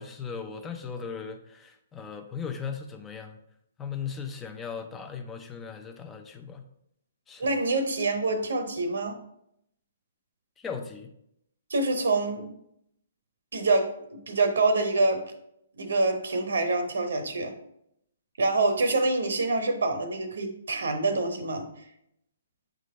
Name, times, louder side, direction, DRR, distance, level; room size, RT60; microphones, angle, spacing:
voice 1, 0.0-3.4 3.8-6.6 7.3-7.5 10.6-11.1, left 6 dB, 15° left, 5 dB, 0.7 m, -37 dB
voice 2, 7.4-9.2 11.7-12.5 13.5-15.2 15.8-17.5 18.4-21.7, right 2 dB, 80° right, 7 dB, 0.9 m, -26 dB
8.4 x 3.8 x 3.2 m, 0.76 s
hypercardioid pair, 140°, 0 cm